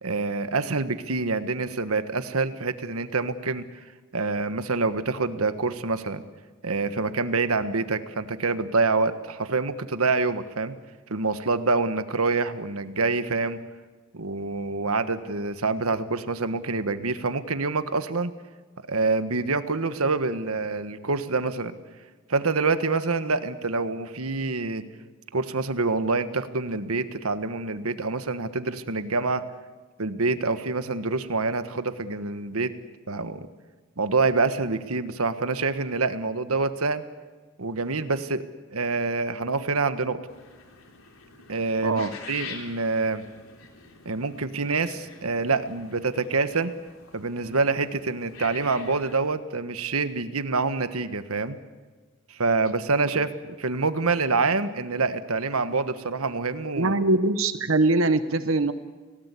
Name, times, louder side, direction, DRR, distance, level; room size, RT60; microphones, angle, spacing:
voice 1, 0.0-3.6 4.1-6.2 6.6-10.7 11.1-13.6 14.1-18.3 18.9-21.7 22.3-24.8 25.3-29.4 30.0-32.7 33.1-33.5 34.0-37.0 37.6-38.4 38.7-40.2 41.5-42.0 42.3-43.2 44.0-46.7 47.1-51.6 52.3-57.0, right 3 dB, 85° right, 11 dB, 1.4 m, -26 dB
sound 1, 40.3-49.2, left 5 dB, 75° left, 3.4 m, -46 dB
voice 2, 41.8-42.1 53.1-53.2 56.7-58.7, right 2 dB, 65° right, 11 dB, 1.0 m, -22 dB
30.0 x 18.0 x 8.4 m, 1.4 s
head